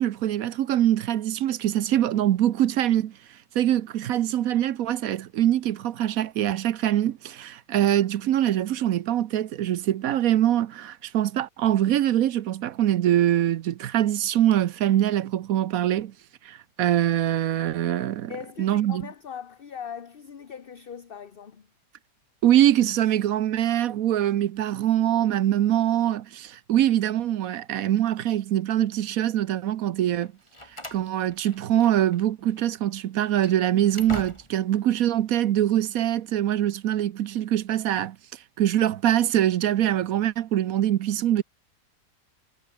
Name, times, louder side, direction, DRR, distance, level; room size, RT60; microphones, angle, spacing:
voice 1, 0.0-3.1 3.5-16.1 16.4-18.3 18.6-19.0 22.4-30.3 30.9-38.2 38.6-41.4, right 12 dB, 65° right, 1.0 m, -23 dB
voice 2, 18.3-21.7, left 7 dB, 40° left, 1.1 m, -40 dB
Slam, 30.2-32.2 32.5-32.7 33.2-34.8, left 1 dB, 15° left, 4.3 m, -42 dB
omnidirectional pair, 1.8 m